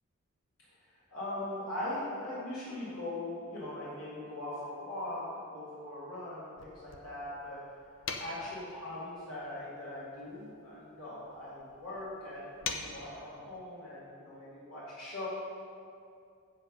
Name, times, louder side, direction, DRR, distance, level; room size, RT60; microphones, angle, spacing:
voice 1, 1.1-7.6 8.2-15.3, left 1 dB, 75° left, -9 dB, 2.4 m, -40 dB
sound 1, 6.6-13.4, left 4 dB, 55° left, 0.7 m, -45 dB
8.1 x 7.4 x 5.4 m, 2.4 s
head